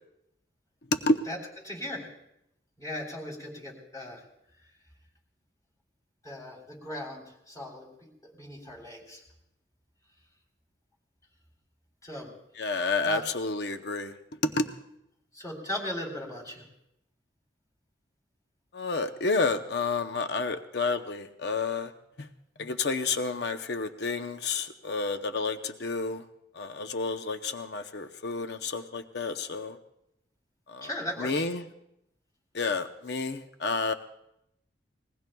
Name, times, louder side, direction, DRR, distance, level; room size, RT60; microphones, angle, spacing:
voice 1, 1.3-2.1 2.8-4.2 6.2-7.9 8.2-9.2 12.0-12.3 12.7-13.2 15.3-16.7 30.8-31.5, left 1 dB, 20° left, -2 dB, 3.6 m, -38 dB
voice 2, 12.6-14.1 14.4-14.7 18.7-21.9 22.2-22.3 22.6-26.2 26.6-29.8 30.7-30.9 31.2-31.6 32.5-33.9, left 3 dB, 65° left, 8 dB, 0.7 m, -30 dB
26.5 x 20.5 x 2.3 m, 0.81 s
head